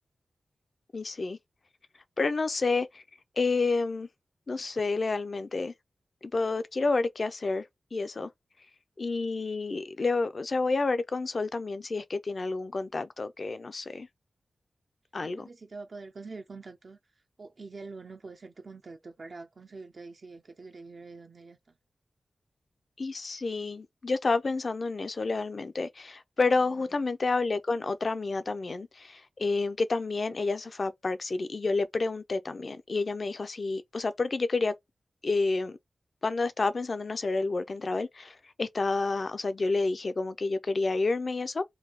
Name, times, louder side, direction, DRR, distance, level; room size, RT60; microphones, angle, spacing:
voice 1, 0.9-1.4 2.2-3.0 3.4-4.1 4.5-5.7 6.2-7.7 7.9-8.3 9.0-14.1 15.1-15.5 23.0-34.7 35.2-35.8 36.2-41.6, left 3 dB, 50° left, 0.5 m, -29 dB
voice 2, 15.2-17.0 17.4-21.8 26.6-26.9, right 3 dB, 55° right, 0.6 m, -45 dB
3.3 x 2.3 x 3.5 m
wide cardioid pair, 90°, 0 cm